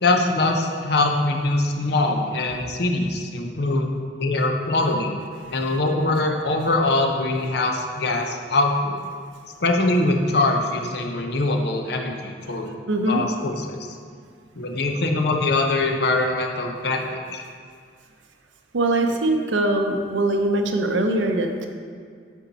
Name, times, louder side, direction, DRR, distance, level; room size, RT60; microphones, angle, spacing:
voice 1, 0.0-3.9 4.2-5.2 5.5-9.0 9.6-12.7 13.0-13.8 14.6-17.4, left 2 dB, 60° left, 3 dB, 0.7 m, -23 dB
voice 2, 12.9-13.2 18.7-21.7, right 2 dB, 85° right, 5 dB, 0.7 m, -22 dB
8.3 x 4.4 x 4.0 m, 2.1 s
head